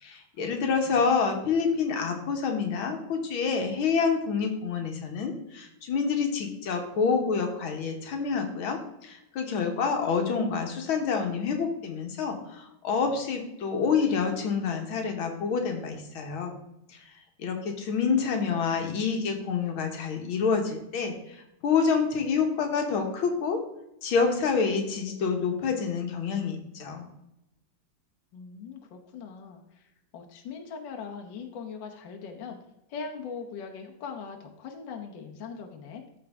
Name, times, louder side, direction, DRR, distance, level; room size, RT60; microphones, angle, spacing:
voice 1, 0.0-16.5 17.4-23.6 24.0-27.1, left 5 dB, 85° left, 4 dB, 2.0 m, -27 dB
voice 2, 28.3-32.6 32.9-36.0, left 5 dB, 65° left, 2 dB, 1.6 m, -41 dB
13.5 x 4.7 x 3.5 m, 0.87 s
omnidirectional pair, 2.2 m